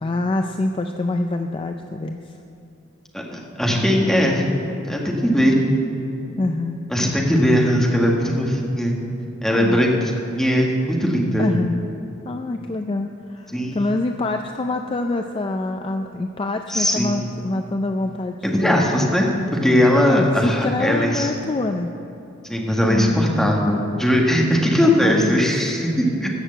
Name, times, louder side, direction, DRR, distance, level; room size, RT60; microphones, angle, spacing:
voice 1, 0.0-2.3 6.4-6.8 9.5-9.9 11.4-11.9 12.2-19.0 20.1-21.9 22.9-23.2 25.0-25.4, left 2 dB, 25° left, 5 dB, 0.4 m, -25 dB
voice 2, 3.1-4.4 4.8-5.6 6.9-9.0 9.4-9.9 10.4-11.5 13.5-13.9 16.7-17.3 18.4-19.3 19.6-21.3 22.5-26.3, equal, ahead, -2 dB, 1.5 m, -19 dB
14.0 x 6.5 x 7.9 m, 2.9 s
head